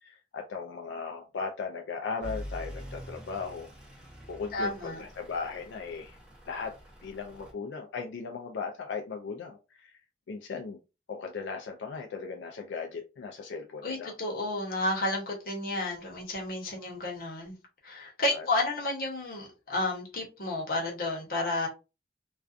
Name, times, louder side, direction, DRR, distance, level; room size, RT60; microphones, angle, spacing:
voice 1, 0.0-3.7 4.3-6.2 6.5-6.7 7.0-10.0 10.3-10.8 11.1-14.1 18.3-18.5, left 5 dB, 85° left, 3 dB, 0.4 m, -37 dB
Truck / Idling, 2.2-7.5, equal, 5° right, 0.6 m, -45 dB
voice 2, 4.5-5.0 13.8-17.5 17.8-21.7, left 2 dB, 55° left, -1 dB, 0.9 m, -31 dB
2.4 x 2.2 x 2.4 m, 0.29 s
head